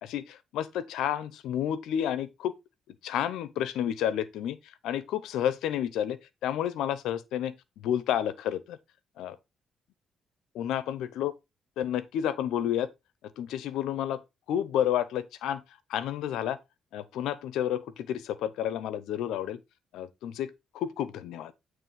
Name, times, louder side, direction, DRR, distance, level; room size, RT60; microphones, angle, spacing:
voice 1, 0.0-2.6 3.0-4.6 4.8-7.5 7.8-8.8 9.2-9.4 10.5-11.3 11.8-12.9 13.4-14.2 14.5-15.6 15.9-16.6 16.9-19.6 19.9-20.5 20.7-21.5, left 10 dB, 85° left, 0.7 m, -30 dB
9.1 x 3.2 x 4.7 m
cardioid pair, 90°, 0 cm